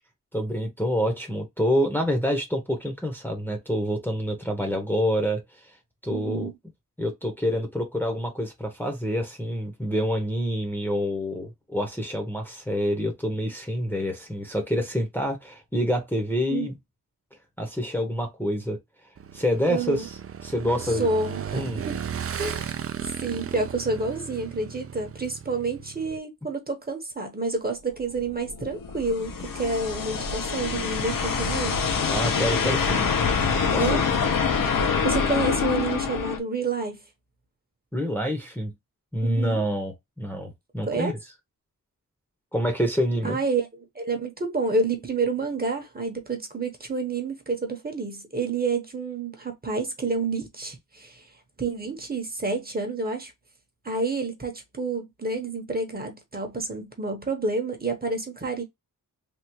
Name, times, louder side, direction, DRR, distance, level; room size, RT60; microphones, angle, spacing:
voice 1, 0.3-5.8 6.0-6.5 7.0-16.7 17.6-18.8 19.3-20.2 20.4-21.1 21.5-21.8 32.1-33.1 33.7-34.3 37.9-38.7 39.1-41.1 42.5-43.4, equal, 5° left, 0.8 m, -27 dB
voice 2, 6.1-6.5 16.5-16.7 19.7-20.1 20.8-22.0 22.4-22.7 23.2-31.8 33.8-34.0 35.0-37.0 39.2-39.6 40.9-41.1 43.2-43.7 43.9-51.3 51.6-53.3 53.8-58.6, right 3 dB, 30° right, 0.9 m, -29 dB
Motorcycle / Engine, 19.2-26.2, right 8 dB, 45° right, 0.4 m, -35 dB
sound 1, 28.1-36.4, left 5 dB, 75° left, 0.8 m, -25 dB
3.5 x 2.3 x 2.8 m
wide cardioid pair, 140°, 33 cm